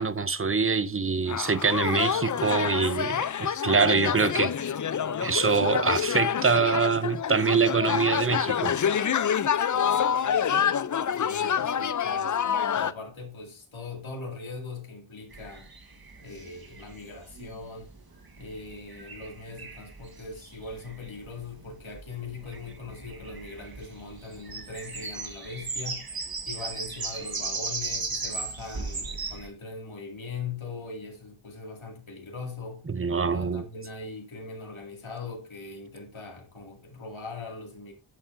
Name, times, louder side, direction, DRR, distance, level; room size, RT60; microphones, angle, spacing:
voice 1, 0.0-4.5 5.2-8.7 32.9-33.6, right 5 dB, 25° right, 0.7 m, -24 dB
sound 1, 1.3-12.9, left 8 dB, 40° left, 0.4 m, -27 dB
voice 2, 11.2-12.4 12.7-15.7 16.2-17.9 18.4-26.1 26.5-32.8 33.3-37.9, left 3 dB, 70° left, 2.4 m, -40 dB
sound 2, 15.3-29.5, right 4 dB, 45° right, 1.5 m, -37 dB
8.9 x 7.1 x 2.6 m
wide cardioid pair, 65°, 49 cm